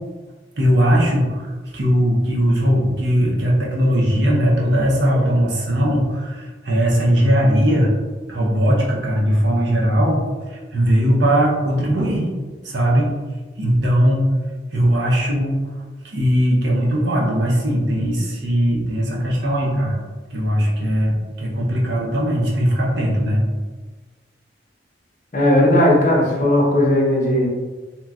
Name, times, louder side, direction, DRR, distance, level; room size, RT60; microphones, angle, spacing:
voice 1, 0.6-7.9 8.3-12.3 12.6-13.2 13.6-14.4 14.7-15.7 16.0-20.0 20.3-23.4, equal, 75° right, -3 dB, 0.7 m, -19 dB
voice 2, 25.3-27.5, left 1 dB, 45° left, -3 dB, 0.7 m, -16 dB
2.9 x 2.2 x 2.3 m, 1.3 s
head